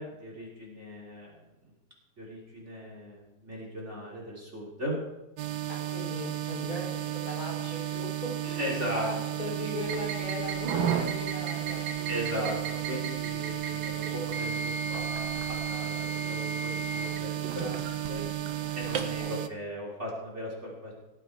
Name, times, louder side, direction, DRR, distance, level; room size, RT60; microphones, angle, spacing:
voice 1, 0.0-1.5 2.2-5.0 8.6-9.1 12.1-18.2 18.7-21.0, equal, 35° right, -2 dB, 3.2 m, -38 dB
sound 1, 5.4-19.5, right 14 dB, 65° right, 1.1 m, -34 dB
voice 2, 5.7-11.9 19.2-19.4, left 1 dB, 45° left, -2 dB, 4.2 m, -39 dB
sound 2, 9.8-19.2, right 5 dB, 85° right, 2.0 m, -35 dB
19.0 x 8.3 x 4.6 m, 0.99 s
omnidirectional pair, 2.2 m